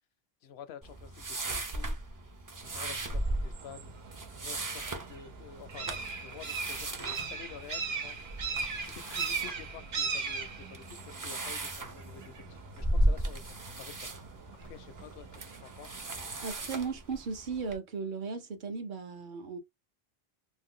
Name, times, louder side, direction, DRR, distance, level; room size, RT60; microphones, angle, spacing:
voice 1, 0.4-2.0 2.6-3.9 4.3-8.2 8.8-14.2 14.6-16.0, left 9 dB, 80° left, 0.8 m, -50 dB
sound 1, 0.8-17.8, right 1 dB, 30° right, 0.3 m, -37 dB
sound 2, 2.6-16.4, right 5 dB, 75° right, 1.0 m, -40 dB
voice 2, 16.4-19.6, right 5 dB, 55° right, 0.7 m, -36 dB
2.6 x 2.1 x 3.6 m
omnidirectional pair, 1.0 m